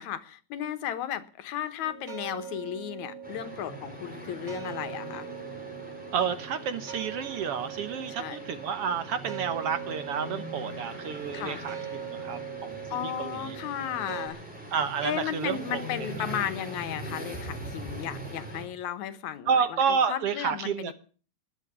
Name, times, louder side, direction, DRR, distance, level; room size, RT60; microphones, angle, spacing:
voice 1, 0.0-5.3 8.2-8.4 11.3-11.6 12.9-14.4 15.0-20.9, left 10 dB, 80° left, 12 dB, 2.6 m, -34 dB
sound 1, 1.8-14.3, right 7 dB, 25° right, 2.4 m, -41 dB
sound 2, 3.2-18.6, right 1 dB, 5° right, 5.1 m, -42 dB
voice 2, 6.1-13.6 14.7-16.1 19.5-20.9, right 6 dB, 60° right, 12 dB, 1.9 m, -30 dB
20.5 x 7.7 x 8.6 m, 0.40 s
omnidirectional pair, 3.3 m